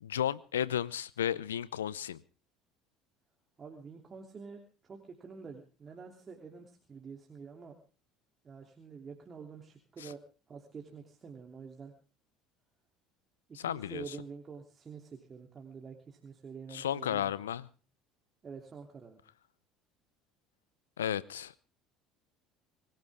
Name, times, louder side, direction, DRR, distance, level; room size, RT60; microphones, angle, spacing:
voice 1, 0.0-2.2 10.0-10.1 13.5-14.2 16.7-17.7 21.0-21.6, left 10 dB, 85° left, 21 dB, 0.7 m, -33 dB
voice 2, 3.6-7.7 8.4-10.2 10.5-11.9 13.6-17.3 18.4-19.2, right 5 dB, 35° right, 2 dB, 3.1 m, -47 dB
24.0 x 16.0 x 3.6 m, 0.36 s
hypercardioid pair, 65°, 0 cm